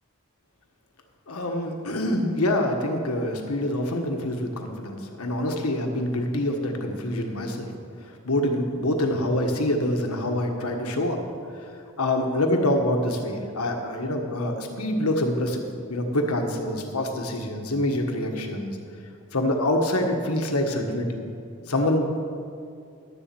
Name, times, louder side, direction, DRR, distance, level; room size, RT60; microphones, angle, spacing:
voice 1, 1.3-7.7 8.1-11.2 12.0-15.6 15.9-18.8 19.3-21.2 21.7-22.2, left 1 dB, 85° left, 3 dB, 1.5 m, -26 dB
11.5 x 7.3 x 7.7 m, 2.5 s
head